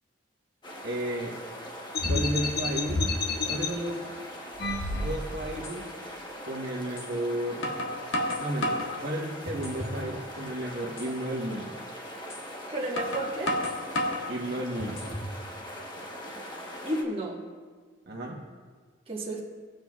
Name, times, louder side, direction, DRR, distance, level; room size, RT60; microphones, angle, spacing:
sound 1, 0.6-17.0, equal, 25° left, 1.1 m, -41 dB
voice 1, 0.8-1.4 2.1-3.1 3.5-4.0 4.9-5.9 6.5-7.7 8.4-11.7 14.3-15.0 18.1-18.4, right 1 dB, 55° right, -2 dB, 1.2 m, -33 dB
sound 2, 1.9-3.7 4.6-5.5, left 3 dB, 55° left, 0.8 m, -29 dB
sound 3, 5.6-5.8 7.0-7.1 7.6-8.9 9.5-10.0 10.4-10.5 11.0-11.1 12.3-12.4 13.0-14.3 14.8-15.3, left 1 dB, 90° left, 1.5 m, -31 dB
voice 2, 12.7-13.6 16.8-17.4 19.1-19.4, right 1 dB, 30° right, -4 dB, 1.5 m, -32 dB
18.5 x 7.7 x 2.4 m, 1.5 s
head